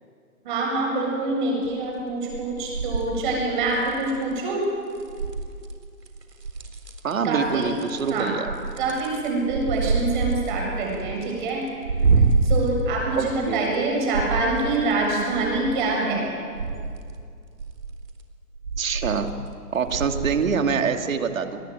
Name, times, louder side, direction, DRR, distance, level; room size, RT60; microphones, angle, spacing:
voice 1, 0.4-4.7 7.2-7.7 8.1-8.3 8.8-11.6 12.4-16.3, right 2 dB, 30° right, -1 dB, 7.4 m, -25 dB
sound 1, 1.6-2.0 2.3-4.2 5.0-5.7 6.1-7.1 7.4-13.8 14.1-15.8 16.3-17.0 17.6-18.1 18.5-19.5 19.8-20.4 20.9-21.0, right 4 dB, 80° right, 4.0 m, -27 dB
voice 2, 7.0-8.5 13.1-13.7 18.8-19.3 19.7-21.6, right 6 dB, 55° right, 7 dB, 2.5 m, -25 dB
28.0 x 20.5 x 9.3 m, 2.3 s
hypercardioid pair, 155°, 47 cm